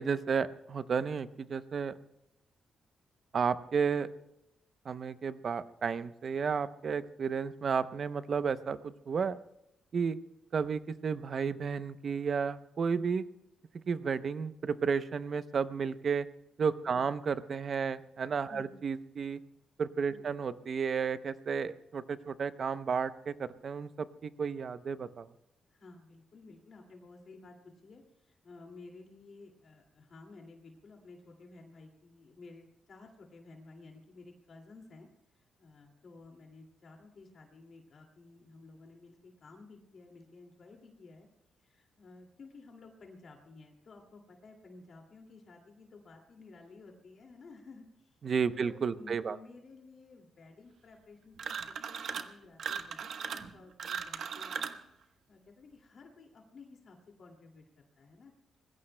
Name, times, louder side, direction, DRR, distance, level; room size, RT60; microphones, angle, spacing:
voice 1, 0.0-2.0 3.3-4.1 4.8-9.4 9.9-10.2 10.5-13.3 13.9-16.3 16.6-19.4 19.8-25.3 48.2-49.4, right 6 dB, 45° right, 13 dB, 0.6 m, -32 dB
voice 2, 25.7-35.1 35.6-41.3 41.6-48.1 48.5-54.6 55.3-57.6 58.0-58.3, left 3 dB, 50° left, 2 dB, 2.3 m, -54 dB
sound 1, 51.4-52.3 52.6-54.8, right 7 dB, 65° right, 1.0 m, -38 dB
25.5 x 20.5 x 2.2 m, 0.85 s
cardioid pair, 140°, 0 cm